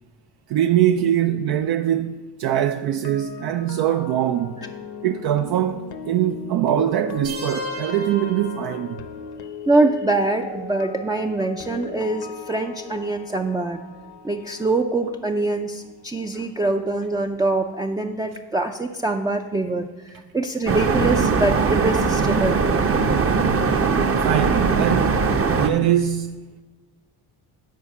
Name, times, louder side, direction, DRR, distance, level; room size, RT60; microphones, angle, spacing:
voice 1, 0.5-4.6 5.0-9.0 16.3-16.4 24.2-25.2 25.6-26.6, right 11 dB, 65° right, 0.5 m, -22 dB
sound 1, 2.8-16.9 17.2-17.4, left 5 dB, 65° left, 0.9 m, -38 dB
sound 2, 7.2-9.2, equal, 90° right, 3.4 m, -35 dB
voice 2, 9.7-13.8 14.2-22.6, right 2 dB, 10° right, 0.4 m, -24 dB
sound 3, 20.7-25.7, right 4 dB, 35° right, 0.8 m, -20 dB
10.5 x 4.3 x 7.2 m
cardioid pair, 95°, 41 cm